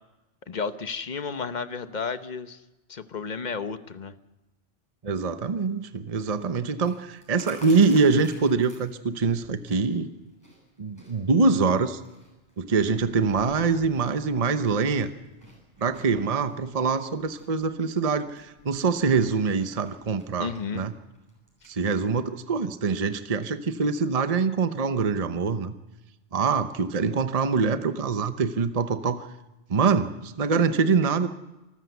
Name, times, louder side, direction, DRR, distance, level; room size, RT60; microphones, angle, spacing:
voice 1, 0.5-2.6 2.9-4.1 20.4-20.9, left 5 dB, 40° left, 11 dB, 1.1 m, -32 dB
voice 2, 5.0-10.1 10.8-12.0 12.6-15.1 15.8-20.9 21.7-25.7 26.3-29.2 29.7-31.3, right 4 dB, 35° right, 10 dB, 0.9 m, -24 dB
Chewing mastication, 6.2-21.8, equal, 15° right, 7.4 m, -53 dB
26.5 x 14.0 x 8.2 m, 1.0 s
omnidirectional pair, 1.2 m